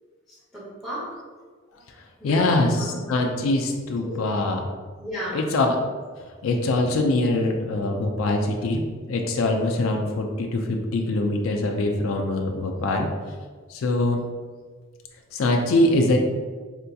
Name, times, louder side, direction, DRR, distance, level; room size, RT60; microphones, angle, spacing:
voice 1, 0.3-1.1 2.2-3.0 4.0-4.2 5.0-5.4, equal, ahead, -11 dB, 0.7 m, -34 dB
voice 2, 2.2-4.7 5.3-5.8 6.4-13.1 13.7-14.2 15.3-16.2, left 2 dB, 70° left, 2 dB, 0.4 m, -23 dB
4.3 x 2.7 x 2.2 m, 1.5 s
head